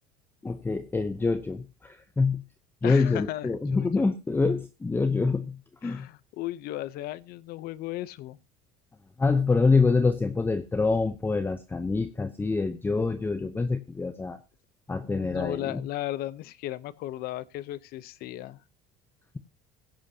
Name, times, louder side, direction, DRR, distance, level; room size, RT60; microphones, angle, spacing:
voice 1, 0.4-2.4 2.8-5.6 5.8-6.1 9.2-14.4 14.9-15.8, left 4 dB, 10° left, 0.8 m, -26 dB
voice 2, 2.8-4.1 5.8-8.4 15.1-18.6, left 15 dB, 60° left, 0.8 m, -36 dB
17.0 x 10.5 x 2.9 m
cardioid pair, 125°, 18 cm